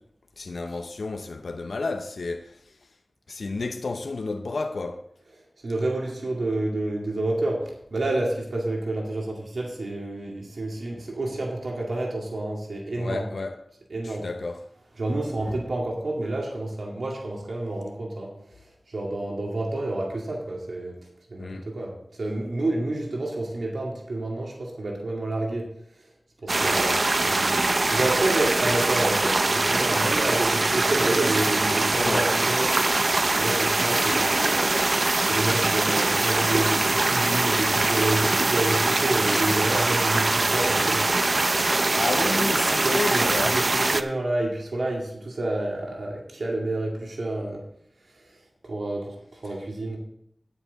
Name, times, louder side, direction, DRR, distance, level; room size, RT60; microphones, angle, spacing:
voice 1, 0.4-2.8 3.3-5.0 13.0-13.6 14.0-14.6 21.4-21.7 26.6-27.1 32.0-32.3 42.0-43.6 49.4-49.5, left 3 dB, 90° left, 0.7 m, -31 dB
voice 2, 5.6-13.3 13.9-14.3 15.0-18.3 18.9-20.9 21.3-25.7 26.4-26.9 27.3-27.5 27.9-32.7 33.3-34.7 35.3-41.1 42.1-42.3 42.8-47.6 48.7-50.0, right 2 dB, 85° right, 2.2 m, -29 dB
sound 1, 26.5-44.0, right 2 dB, 50° right, 0.6 m, -23 dB
10.5 x 9.5 x 4.0 m
wide cardioid pair, 70°, 0 cm